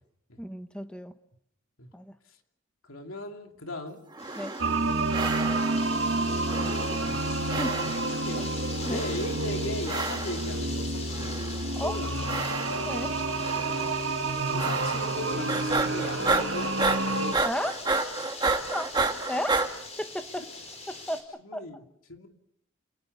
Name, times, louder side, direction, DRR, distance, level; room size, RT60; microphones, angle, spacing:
voice 1, 0.4-1.1 1.9-2.1 4.4-4.5 7.6-7.8 8.4-8.5 8.8-9.0 11.7-12.0 12.9-13.1 17.4-17.7 18.7-18.9 19.3-19.6 20.0-20.4 20.9-21.3 21.5-21.6, equal, 5° left, 9 dB, 1.0 m, -33 dB
voice 2, 2.8-4.0 6.5-7.3 8.2-8.5 8.9-11.3 11.8-12.5 13.7-13.9 14.5-17.4 20.4-20.5 21.4-21.8 22.1-22.3, left 2 dB, 80° left, 4 dB, 2.8 m, -38 dB
sound 1, 4.1-4.8 5.1-5.9 6.5-7.2 7.5-8.2 8.8-9.4 9.8-10.5 11.1-11.7 12.2-13.0 13.4-13.9 14.6-15.2 15.5-19.7, right 3 dB, 20° right, 1.6 m, -31 dB
sound 2, 4.2-21.2, left 3 dB, 30° left, 5.0 m, -42 dB
sound 3, 4.6-17.3, right 2 dB, 60° right, 2.0 m, -29 dB
28.0 x 19.0 x 6.8 m, 0.74 s
head